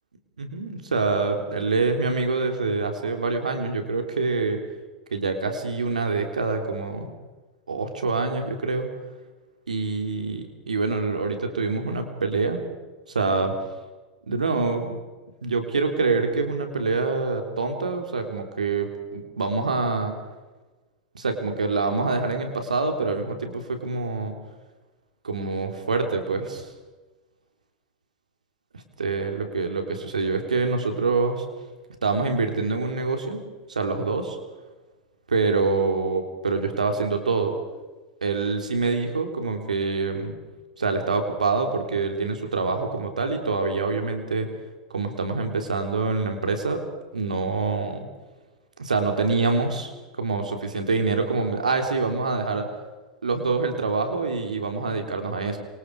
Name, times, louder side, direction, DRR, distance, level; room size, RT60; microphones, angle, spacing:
voice 1, 0.4-4.6 5.1-7.1 7.7-8.9 9.7-12.6 13.1-13.5 14.3-15.0 15.4-20.1 21.1-24.3 25.2-26.7 28.7-31.5 32.0-33.4 33.7-34.4 35.3-37.5 38.2-40.3 40.8-44.5 44.9-46.8 47.1-48.1 48.8-52.6 53.2-55.6, right 4 dB, 90° right, 5 dB, 3.7 m, -25 dB
27.5 x 25.5 x 4.9 m, 1.2 s
hypercardioid pair, 95°, 4 cm